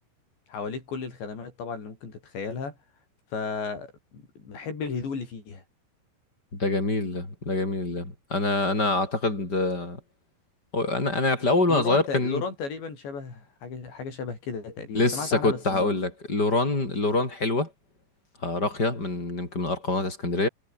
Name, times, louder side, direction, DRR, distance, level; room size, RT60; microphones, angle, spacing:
voice 1, 0.5-2.8 3.3-5.6 11.7-15.9, left 5 dB, 90° left, 9.3 m, -34 dB
voice 2, 6.5-10.0 10.7-12.4 14.9-17.7 18.4-20.5, left 2 dB, 20° left, 7.3 m, -25 dB
omnidirectional pair, 4.9 m